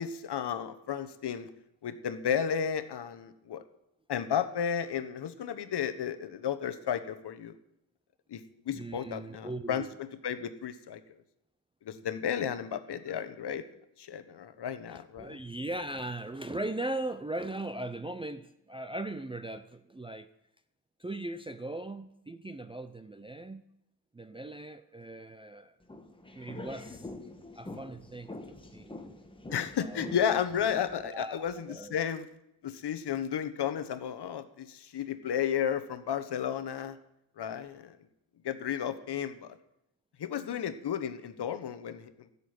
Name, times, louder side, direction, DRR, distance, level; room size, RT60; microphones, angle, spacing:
voice 1, 0.0-1.5 1.8-3.6 4.1-7.5 8.3-9.9 10.2-11.0 11.8-13.6 14.0-15.4 29.5-32.3 32.6-37.0 37.4-38.0 38.4-39.6 40.2-42.3, left 8 dB, 55° left, 1.1 m, -33 dB
voice 2, 8.7-9.9 12.9-13.0 14.9-20.3 21.0-23.6 24.1-25.8 26.3-27.1 27.6-29.0 29.8-30.1 31.0-32.0, right 2 dB, 10° right, 0.5 m, -39 dB
sound 1, 25.8-31.1, left 2 dB, 10° left, 1.5 m, -45 dB
13.0 x 7.0 x 9.6 m
cardioid pair, 105°, 49 cm